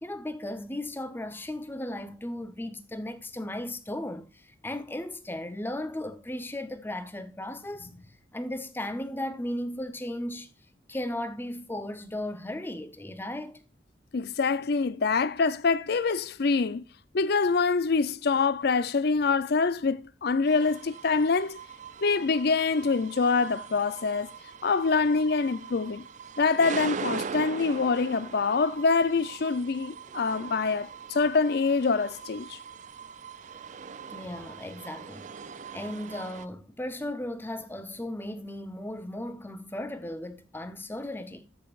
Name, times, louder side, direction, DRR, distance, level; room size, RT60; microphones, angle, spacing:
voice 1, 0.0-10.5 10.9-13.6 34.1-35.3 35.7-41.5, left 1 dB, 10° left, 0.7 m, -36 dB
voice 2, 14.1-16.8 17.1-21.6 22.0-24.3 24.6-26.1 26.4-32.6, left 4 dB, 50° left, 0.4 m, -25 dB
sound 1, 20.5-36.5, right 6 dB, 40° right, 0.4 m, -41 dB
13.5 x 5.2 x 2.4 m
head